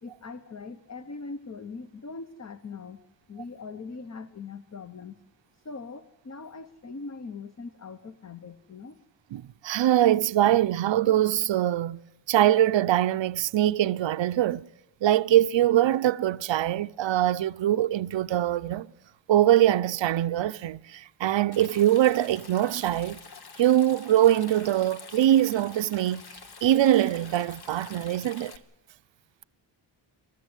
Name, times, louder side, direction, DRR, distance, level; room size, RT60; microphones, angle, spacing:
voice 1, 0.0-3.0 3.3-5.2 5.5-9.0, left 4 dB, 35° left, 1.0 m, -41 dB
voice 2, 9.3-12.0 12.3-14.7 15.0-18.9 19.3-23.2 23.6-26.2 26.6-28.5, right 12 dB, 80° right, 0.7 m, -23 dB
Stream, 21.5-28.6, left 5 dB, 55° left, 1.6 m, -47 dB
29.0 x 13.5 x 8.1 m
wide cardioid pair, 120°, 44 cm